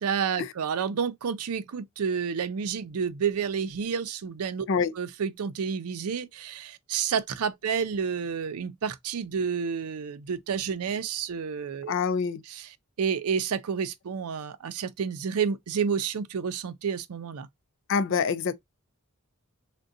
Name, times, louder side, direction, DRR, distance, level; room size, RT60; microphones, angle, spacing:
voice 1, 0.0-4.7 5.0-11.9 12.5-12.7 13.0-17.5, right 6 dB, 90° right, 0.5 m, -30 dB
voice 2, 11.9-12.4 17.9-18.5, left 5 dB, 60° left, 0.4 m, -25 dB
3.7 x 2.2 x 2.5 m
head